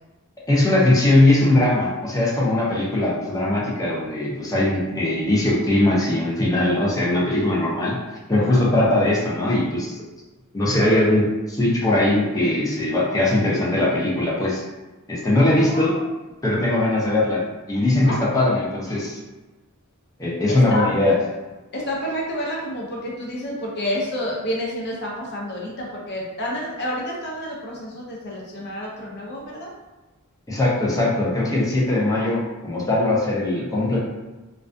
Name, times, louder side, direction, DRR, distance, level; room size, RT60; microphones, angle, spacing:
voice 1, 0.5-8.0 8.3-10.0 10.5-14.6 15.1-16.0 16.4-19.2 20.2-21.2 30.5-34.0, left 1 dB, 15° left, -5 dB, 0.5 m, -20 dB
voice 2, 15.6-16.1 18.0-18.2 18.9-19.0 20.5-20.8 21.7-29.7, equal, 50° left, -3 dB, 0.6 m, -29 dB
2.3 x 2.3 x 2.4 m, 1.1 s
head